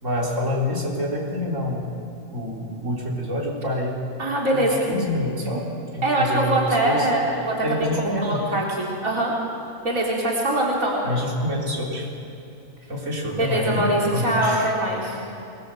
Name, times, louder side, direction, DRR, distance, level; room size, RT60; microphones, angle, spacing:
voice 1, 0.0-1.9 2.3-4.0 4.5-5.7 5.9-7.1 7.6-8.4 11.0-12.1 12.9-14.7, left 1 dB, 65° right, -3 dB, 4.4 m, -27 dB
voice 2, 4.2-4.9 5.5-5.6 6.0-7.9 8.2-9.3 9.8-11.0 13.3-15.2, right 1 dB, 85° right, -4 dB, 4.2 m, -23 dB
28.5 x 22.0 x 7.7 m, 2.6 s
omnidirectional pair, 1.4 m